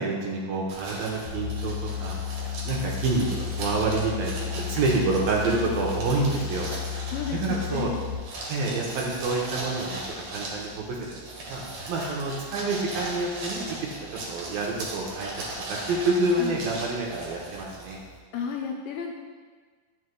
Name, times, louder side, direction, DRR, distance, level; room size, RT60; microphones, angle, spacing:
voice 1, 0.0-2.2 2.7-6.7 7.4-7.9 8.5-10.0 10.3-11.0 11.5-11.6 11.9-13.6 14.1-15.3 15.7-18.0, right 3 dB, 75° right, -2 dB, 2.6 m, -27 dB
sound 1, 0.7-18.2, right 2 dB, 60° right, 2.0 m, -38 dB
sound 2, 1.2-8.1, left 8 dB, 45° left, 1.7 m, -33 dB
voice 2, 7.1-8.1 16.4-16.7 18.3-19.1, left 6 dB, 80° left, 0 dB, 2.2 m, -32 dB
9.5 x 7.3 x 2.2 m, 1.5 s
omnidirectional pair, 4.4 m